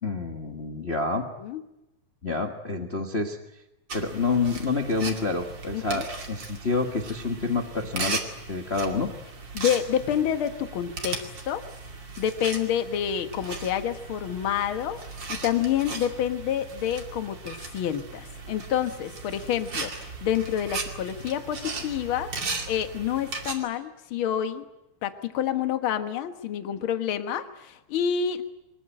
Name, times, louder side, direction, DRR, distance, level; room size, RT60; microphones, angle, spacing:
voice 1, 0.0-1.3 2.2-3.4 3.9-8.2 8.5-9.1, left 3 dB, 80° left, 3 dB, 0.5 m, -28 dB
sound 1, 3.9-23.5, right 3 dB, 35° right, 2.8 m, -37 dB
voice 2, 5.7-6.1 9.5-11.6 12.2-15.0 15.3-24.6 25.0-28.4, left 9 dB, 55° left, 8 dB, 1.6 m, -28 dB
24.0 x 20.0 x 8.9 m, 0.92 s
omnidirectional pair, 3.9 m